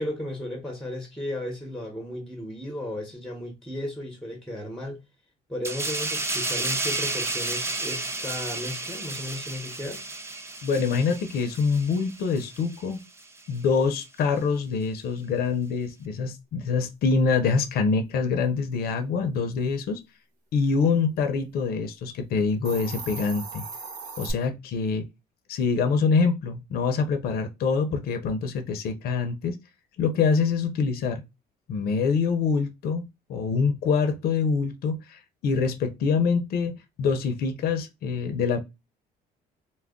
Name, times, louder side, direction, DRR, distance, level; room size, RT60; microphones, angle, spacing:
voice 1, 0.0-5.0 5.5-10.0, left 1 dB, ahead, 0.9 m, -34 dB
sound 1, 5.6-12.8 13.2-13.4, right 2 dB, 15° right, 0.5 m, -32 dB
voice 2, 10.6-13.0 13.5-20.0 20.5-23.6 24.2-25.0 25.5-29.6 30.0-31.2 31.7-33.0 33.3-38.6, left 5 dB, 65° left, 0.6 m, -25 dB
Hiss, 22.5-24.3, right 4 dB, 60° right, 1.0 m, -37 dB
2.3 x 2.1 x 3.6 m
cardioid pair, 110°, 17 cm